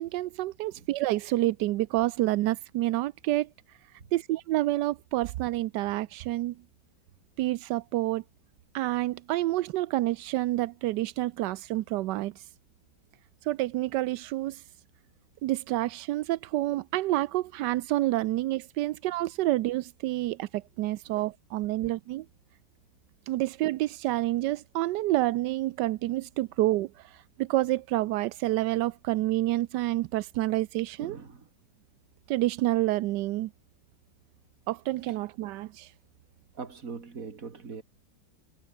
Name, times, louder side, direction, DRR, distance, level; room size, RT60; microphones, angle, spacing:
voice 1, 0.0-3.5 4.1-6.5 7.4-8.2 8.7-12.5 13.4-14.6 15.4-22.3 23.3-31.2 32.3-33.5 34.7-35.9, right 16 dB, 75° right, 1.1 m, -28 dB
voice 2, 31.0-31.5 36.5-37.8, right 5 dB, 40° right, 2.7 m, -41 dB
omnidirectional pair, 2.2 m